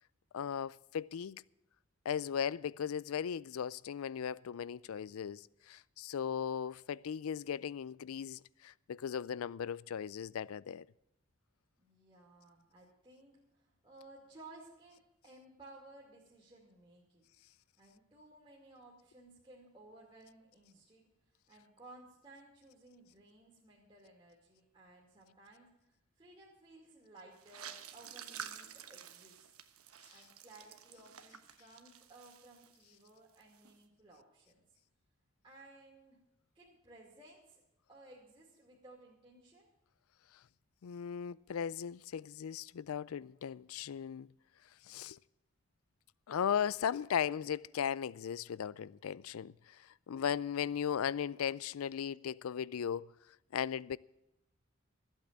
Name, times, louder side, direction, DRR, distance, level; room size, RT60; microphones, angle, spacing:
voice 1, 0.3-1.4 2.1-10.9 40.8-44.3 44.8-45.2 46.3-53.1 53.5-54.0, left 8 dB, 80° left, 0.4 m, -37 dB
voice 2, 11.8-17.3 17.8-21.1 21.5-29.5 30.1-34.6 35.4-36.2 36.5-37.6 37.9-39.7, right 2 dB, 25° right, 2.3 m, -58 dB
sound 1, 27.4-33.1 33.3-33.7, right 8 dB, 90° right, 1.2 m, -50 dB
14.5 x 8.5 x 7.3 m
head